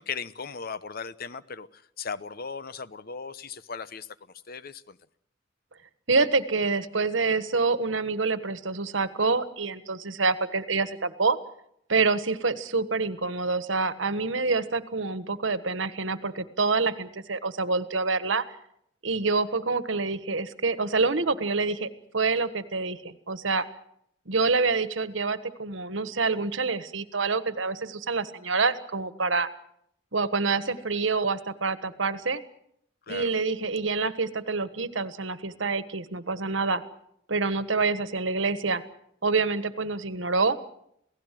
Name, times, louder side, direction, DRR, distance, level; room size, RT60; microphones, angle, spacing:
voice 1, 0.0-4.1 4.5-5.0 33.1-33.3, left 5 dB, 50° left, 0.9 m, -37 dB
voice 2, 6.1-11.4 11.9-18.4 19.0-21.9 22.1-23.7 24.3-29.5 30.1-32.4 33.1-36.8 37.3-38.8 39.2-40.6, right 4 dB, 85° right, 1.5 m, -27 dB
28.0 x 17.5 x 7.6 m
head